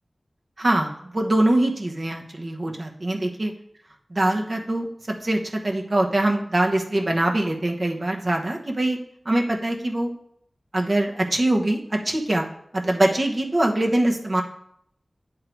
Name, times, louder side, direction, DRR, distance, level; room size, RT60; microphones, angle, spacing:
voice 1, 0.6-3.5 4.1-4.9 5.2-9.0 9.2-10.1 10.7-12.4 12.7-14.4, right 1 dB, 50° right, 1 dB, 1.0 m, -23 dB
9.2 x 3.7 x 4.5 m, 0.71 s
wide cardioid pair, 50°, 0 cm